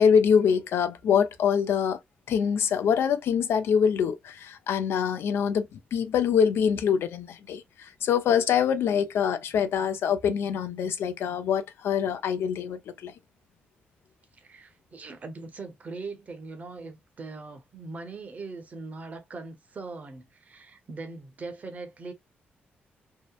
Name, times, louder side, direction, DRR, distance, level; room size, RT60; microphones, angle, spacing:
voice 1, 0.0-2.0 2.3-13.1, left 7 dB, 85° left, 0.4 m, -24 dB
voice 2, 14.4-22.1, right 3 dB, 40° right, 0.7 m, -40 dB
2.8 x 2.1 x 2.3 m
cardioid pair, 105°, 4 cm